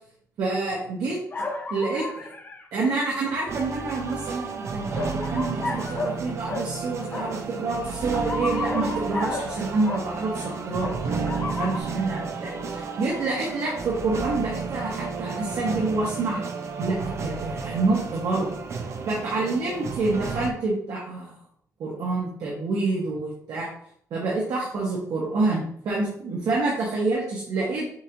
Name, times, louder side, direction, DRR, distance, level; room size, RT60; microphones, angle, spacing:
voice 1, 0.4-1.2 1.7-2.3 2.7-16.5 16.8-18.5 19.1-21.3 21.8-23.7 24.1-27.9, right 3 dB, 70° right, -4 dB, 1.2 m, -27 dB
sound 1, 1.3-2.6 3.7-4.3 4.9-6.2 6.5-6.7 7.1-7.3 8.1-10.0 10.8-11.8, left 3 dB, 30° left, 0.7 m, -32 dB
sound 2, 3.5-20.5, right 4 dB, 45° right, 0.5 m, -32 dB
7.0 x 2.6 x 2.9 m, 0.65 s
wide cardioid pair, 145°, 7 cm